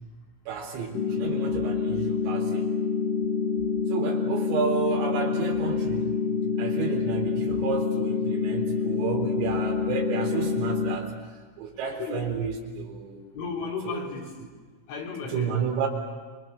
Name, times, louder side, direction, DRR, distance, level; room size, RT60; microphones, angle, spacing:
voice 1, 0.5-2.7 3.9-6.2 6.6-11.1 11.6-13.2 13.9-14.1 15.3-15.9, right 6 dB, 85° right, 2 dB, 6.5 m, -31 dB
sound 1, 0.9-11.0, left 5 dB, 45° left, 2.1 m, -27 dB
voice 2, 13.3-14.4 14.9-15.6, left 5 dB, 65° left, -2 dB, 6.4 m, -34 dB
28.5 x 25.5 x 7.1 m, 1.4 s
omnidirectional pair, 5.9 m